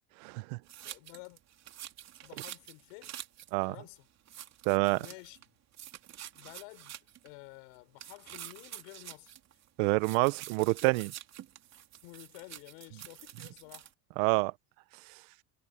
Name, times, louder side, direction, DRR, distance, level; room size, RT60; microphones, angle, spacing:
voice 1, 0.2-0.6 3.5-3.7 4.7-5.0 9.8-11.1 14.2-14.5, right 25 dB, 85° right, 0.8 m, -27 dB
sound 1, 0.7-3.5 3.9-4.0 4.3-5.5 5.7-7.3 8.0-9.7 10.0-13.9, right 12 dB, 45° right, 3.0 m, -48 dB
voice 2, 0.8-1.4 2.2-3.2 3.7-4.1 5.0-5.5 6.3-9.3 9.8-9.9 12.0-13.9, left 29 dB, 80° left, 5.0 m, -51 dB
cardioid pair, 125°, 37 cm